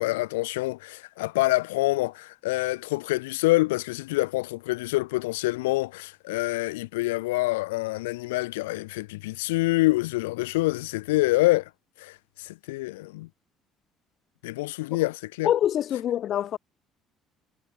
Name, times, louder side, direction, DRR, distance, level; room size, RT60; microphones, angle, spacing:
voice 1, 0.0-11.6 12.0-12.1 12.7-13.3 14.4-15.5, left 20 dB, 75° left, 0.4 m, -26 dB
voice 2, 15.4-16.6, left 11 dB, 55° left, 1.1 m, -25 dB
figure-of-eight pair, 55°, 0 cm